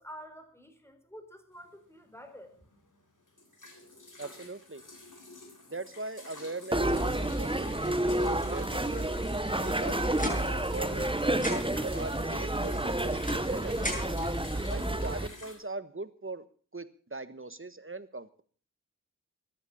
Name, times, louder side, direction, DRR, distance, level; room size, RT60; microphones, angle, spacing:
voice 1, 0.0-2.5, equal, 10° left, 7 dB, 4.0 m, -48 dB
sound 1, 1.6-1.7 2.2-2.3 2.6-2.9 3.2-15.6, left 2 dB, 80° left, 3.6 m, -47 dB
voice 2, 4.2-4.8 5.7-7.7 8.1-9.1 9.6-10.0 10.7-11.2 11.4-14.3 14.7-16.4 16.7-18.4, right 3 dB, 40° right, 13 dB, 1.3 m, -40 dB
sound 2, 6.7-15.3, right 1 dB, 15° right, 1.0 m, -30 dB
sound 3, 9.7-11.0 11.3-11.9 12.7-14.3, left 1 dB, 25° left, 7.9 m, -38 dB
15.5 x 11.5 x 7.0 m, 0.43 s
wide cardioid pair, 40°, 31 cm